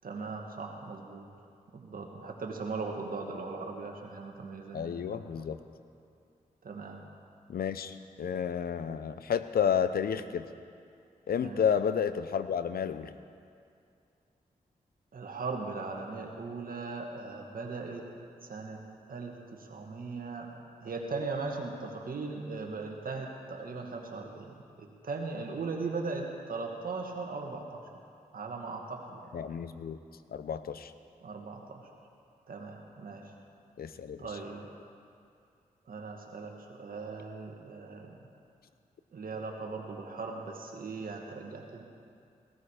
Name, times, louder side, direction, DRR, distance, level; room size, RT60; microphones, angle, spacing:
voice 1, 0.0-1.2 1.7-5.5 6.6-7.1 11.4-11.6 15.1-18.0 18.4-18.8 19.1-20.5 20.8-27.8 28.3-29.4 31.2-31.8 32.5-33.3 34.2-34.7 35.9-38.2 39.1-41.8, right 4 dB, 65° right, 1 dB, 2.1 m, -39 dB
voice 2, 4.7-5.6 7.5-10.5 11.3-13.1 29.3-30.0 30.3-30.9 33.8-34.2, left 7 dB, 75° left, 12 dB, 0.7 m, -31 dB
17.5 x 13.5 x 5.0 m, 2.4 s
cardioid pair, 50°, 16 cm